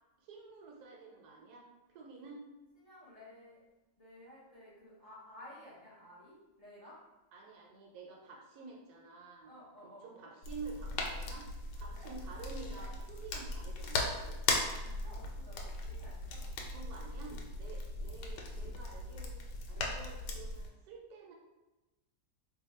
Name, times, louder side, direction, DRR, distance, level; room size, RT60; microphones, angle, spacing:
voice 1, 0.2-2.4 7.3-9.5 9.8-11.5 11.7-14.4 16.7-19.3 19.7-21.3, right 4 dB, 70° right, -1 dB, 1.1 m, -49 dB
voice 2, 2.8-3.6 4.0-7.0 9.4-10.2 11.9-12.1 14.5-16.8, left 1 dB, 35° left, -8 dB, 0.6 m, -54 dB
sound 1, 10.4-20.7, left 3 dB, 85° left, 1.2 m, -38 dB
2.8 x 2.2 x 4.0 m, 1.1 s
omnidirectional pair, 1.8 m